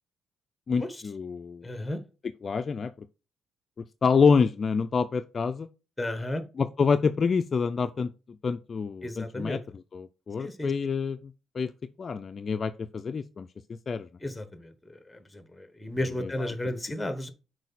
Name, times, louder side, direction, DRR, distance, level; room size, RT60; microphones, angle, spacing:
voice 1, 0.7-1.6 2.4-2.9 4.0-5.7 6.6-8.1 8.4-9.6 9.9-11.2 11.6-11.7 12.0-13.5 13.9-14.1, left 5 dB, 40° left, 0.4 m, -26 dB
voice 2, 1.6-2.0 6.0-6.4 9.0-9.6 10.4-10.7 14.2-17.3, left 1 dB, 5° left, 1.2 m, -33 dB
6.3 x 4.5 x 4.1 m
cardioid pair, 90°, 0 cm